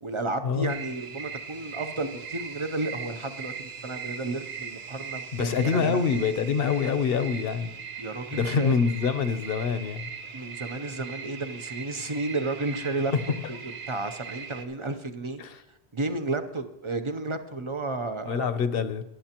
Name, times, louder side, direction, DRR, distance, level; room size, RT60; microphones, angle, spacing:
voice 1, 0.0-6.0 8.0-8.8 10.3-13.1 13.5-13.6 13.9-15.4 15.9-18.5, right 3 dB, 35° right, 8 dB, 0.6 m, -32 dB
sound 1, 0.7-14.7, right 6 dB, 80° right, 1.1 m, -40 dB
voice 2, 5.3-7.8 8.3-10.1 15.4-15.6 18.2-19.0, left 6 dB, 65° left, 12 dB, 0.9 m, -26 dB
21.5 x 7.9 x 2.9 m, 0.90 s
omnidirectional pair, 1.0 m